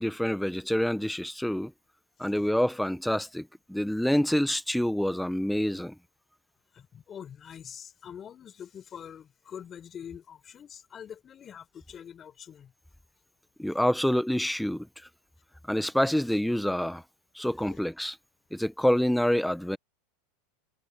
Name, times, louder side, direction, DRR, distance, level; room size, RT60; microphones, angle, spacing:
voice 1, 0.0-1.7 2.2-5.9 13.6-14.9 15.7-17.0 17.4-18.2 18.5-19.8, equal, ahead, 0.7 m, -27 dB
voice 2, 6.7-12.7 13.7-13.8 17.7-17.8, left 8 dB, 30° left, 3.9 m, -45 dB
hypercardioid pair, 100°, 0 cm